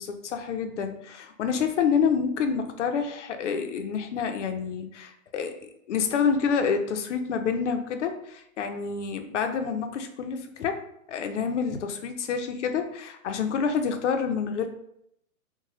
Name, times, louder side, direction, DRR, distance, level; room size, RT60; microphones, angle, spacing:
voice 1, 0.0-10.8 11.1-14.7, left 6 dB, 55° left, 6 dB, 0.5 m, -28 dB
2.9 x 2.2 x 3.0 m, 0.75 s
hypercardioid pair, 165°, 42 cm